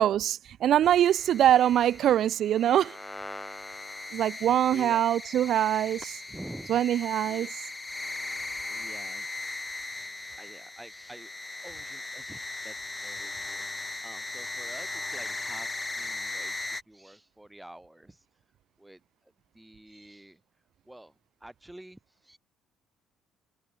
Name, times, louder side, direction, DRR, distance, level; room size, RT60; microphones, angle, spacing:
voice 1, 0.0-3.0 4.1-6.2 6.7-7.5, right 11 dB, 60° right, 1.4 m, -23 dB
sound 1, 0.8-16.8, left 2 dB, 15° left, 4.2 m, -38 dB
voice 2, 4.4-5.0 5.9-7.8 8.3-10.1 10.4-11.3 11.6-18.3 18.8-20.4 20.9-22.4, right 1 dB, 5° right, 7.3 m, -49 dB
cardioid pair, 120°, 0 cm